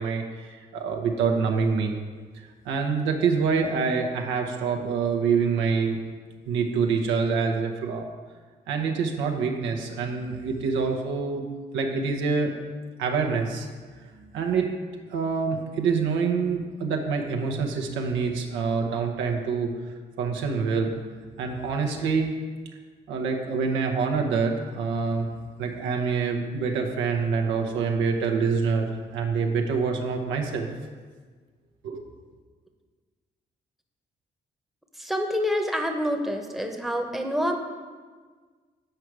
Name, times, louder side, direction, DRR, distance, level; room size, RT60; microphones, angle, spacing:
voice 1, 0.0-1.9 2.6-6.0 6.5-8.1 8.7-11.4 11.7-12.5 13.0-13.7 14.0-14.1 14.3-14.7 15.1-22.3 23.1-25.3 25.6-30.7 31.8-32.0, right 5 dB, 90° right, 2 dB, 0.7 m, -26 dB
voice 2, 35.0-37.6, equal, ahead, 4 dB, 0.9 m, -27 dB
7.7 x 4.9 x 4.6 m, 1.5 s
supercardioid pair, 50°, 19 cm